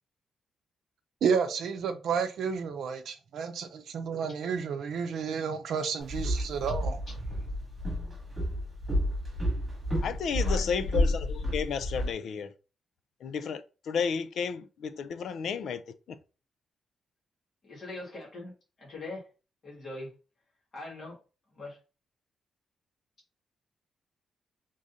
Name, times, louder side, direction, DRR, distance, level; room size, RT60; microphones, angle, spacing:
voice 1, 1.2-7.0, right 6 dB, 65° right, 0.6 m, -31 dB
Walk footsteps, 6.0-12.1, left 1 dB, 20° right, 2.3 m, -30 dB
voice 2, 10.0-12.5 13.2-15.8, left 6 dB, 65° left, 0.4 m, -32 dB
voice 3, 17.6-18.5 18.8-19.3 19.6-20.1 20.7-21.2 21.5-21.8, left 2 dB, 35° left, 2.1 m, -41 dB
4.9 x 3.7 x 2.7 m
wide cardioid pair, 175°, 0 cm